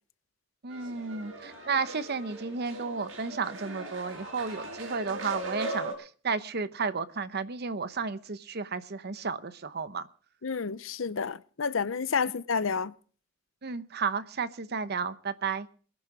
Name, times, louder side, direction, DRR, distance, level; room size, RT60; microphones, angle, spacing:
voice 1, 0.6-10.1 13.6-15.7, right 5 dB, 55° right, 0.9 m, -33 dB
sound 1, 0.7-5.9, right 1 dB, 85° right, 5.8 m, -39 dB
voice 2, 10.4-12.9, left 5 dB, 85° left, 0.7 m, -30 dB
22.5 x 10.0 x 4.8 m
head